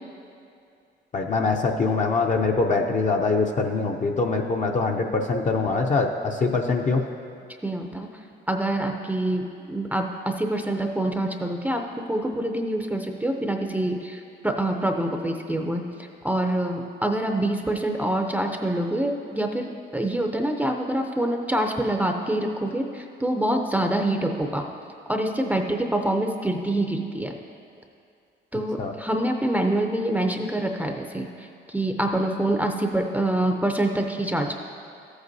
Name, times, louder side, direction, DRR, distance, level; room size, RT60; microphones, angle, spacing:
voice 1, 1.1-7.0 28.8-28.9, left 4 dB, 40° left, 2 dB, 0.6 m, -23 dB
voice 2, 7.6-8.1 8.5-11.8 12.1-24.7 25.1-27.3 28.5-34.6, right 1 dB, 10° right, 3 dB, 0.5 m, -26 dB
14.0 x 8.0 x 2.7 m, 2.5 s
cardioid pair, 90°, 20 cm